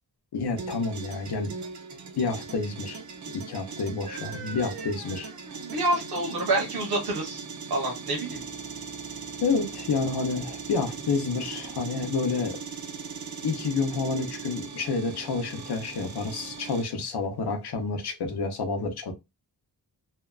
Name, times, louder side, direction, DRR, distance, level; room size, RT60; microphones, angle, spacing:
voice 1, 0.3-1.5 2.2-3.0 3.3-5.3 9.4-12.6 13.4-19.1, left 4 dB, 90° left, 0.7 m, -29 dB
sound 1, 0.6-16.8, right 5 dB, 50° right, 0.5 m, -39 dB
voice 2, 4.1-4.9 5.5-7.4 7.7-8.4, right 2 dB, 80° right, 1.0 m, -29 dB
2.8 x 2.3 x 2.3 m
wide cardioid pair, 130°, 38 cm